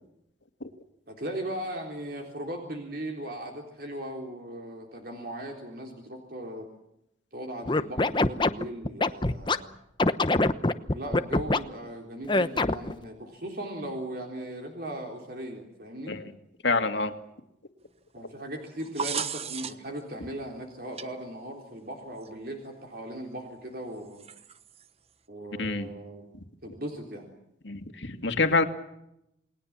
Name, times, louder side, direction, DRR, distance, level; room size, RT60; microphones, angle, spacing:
voice 1, 1.1-6.7 7.3-9.7 10.9-16.2 18.1-24.3 25.3-26.3 26.6-27.3, right 1 dB, 50° right, 2 dB, 3.8 m, -38 dB
Scratching (performance technique), 7.7-9.6 10.0-11.6 12.3-12.9, left 2 dB, 25° left, 0.9 m, -23 dB
voice 2, 16.6-17.1 25.6-25.9 27.6-28.6, left 3 dB, 70° left, 7 dB, 2.4 m, -26 dB
sound 1, 18.7-20.0 21.0-21.1 22.2-22.3 24.2-24.8, right 6 dB, 30° right, 1.2 m, -34 dB
29.0 x 20.5 x 7.4 m, 0.82 s
head